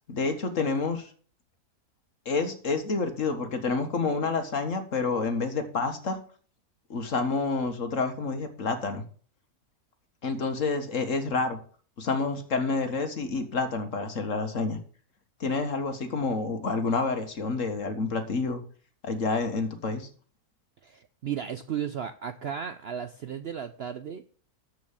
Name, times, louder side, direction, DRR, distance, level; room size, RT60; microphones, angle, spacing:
voice 1, 0.1-1.1 2.3-6.2 6.9-9.0 10.2-11.6 12.0-14.8 15.4-18.6 19.0-20.1, left 4 dB, 55° left, 7 dB, 1.8 m, -28 dB
voice 2, 20.8-24.2, right 8 dB, 60° right, 10 dB, 0.7 m, -34 dB
13.5 x 4.8 x 7.2 m, 0.43 s
omnidirectional pair, 1.6 m